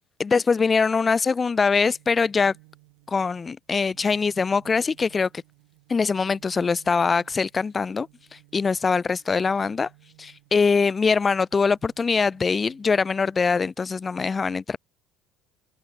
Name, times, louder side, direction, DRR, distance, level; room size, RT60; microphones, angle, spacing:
voice 1, 0.2-2.5 3.1-5.3 5.9-9.9 10.2-14.8, left 5 dB, 30° left, 0.4 m, -23 dB
sound 1, 1.8-10.7 11.2-13.4, right 33 dB, 75° right, 6.4 m, -57 dB
open air
hypercardioid pair, 65°, 0 cm